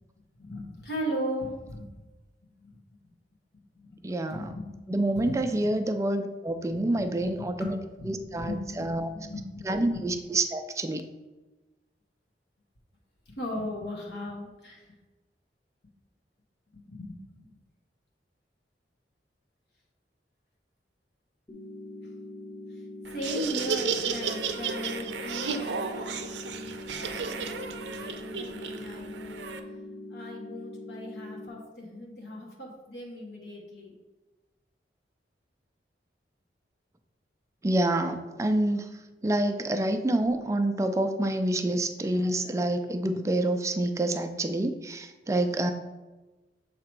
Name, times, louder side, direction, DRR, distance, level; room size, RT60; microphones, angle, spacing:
voice 1, 0.4-2.0 2.6-2.8 3.8-5.7 6.8-6.9 7.1-9.7 9.9-10.0 13.3-14.9 16.7-17.5 23.1-29.4 30.1-33.9, equal, 70° left, -1 dB, 1.1 m, -38 dB
voice 2, 4.0-4.5 4.9-7.8 8.1-9.1 9.7-11.0 37.6-38.9 39.2-45.7, right 1 dB, 15° right, 7 dB, 0.3 m, -27 dB
sound 1, 21.5-31.5, left 2 dB, 25° left, 0.9 m, -42 dB
Laughter, 23.0-29.6, right 5 dB, 80° right, 0.5 m, -33 dB
7.3 x 2.9 x 4.5 m, 1.2 s
head